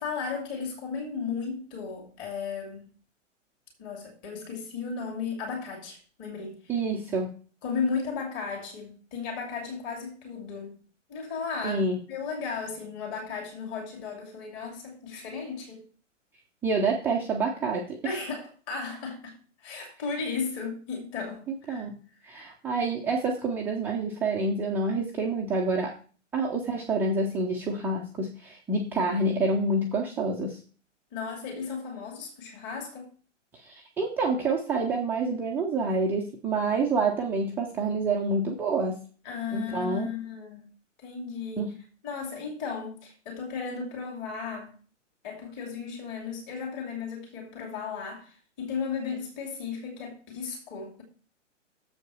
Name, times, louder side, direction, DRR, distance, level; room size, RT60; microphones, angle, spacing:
voice 1, 0.0-2.8 3.8-6.8 7.6-10.8 11.1-11.8 12.1-15.8 18.0-21.9 31.1-33.1 39.2-40.7 41.0-41.7 42.0-44.7 45.2-51.0, left 5 dB, 30° left, 2.6 m, -35 dB
voice 2, 6.7-7.3 11.6-12.0 16.6-18.2 21.5-22.0 22.2-26.0 26.3-30.6 33.6-39.0 39.5-40.1 41.6-41.7, right 3 dB, 5° right, 0.5 m, -28 dB
7.1 x 5.2 x 6.2 m
figure-of-eight pair, 120°, 38 cm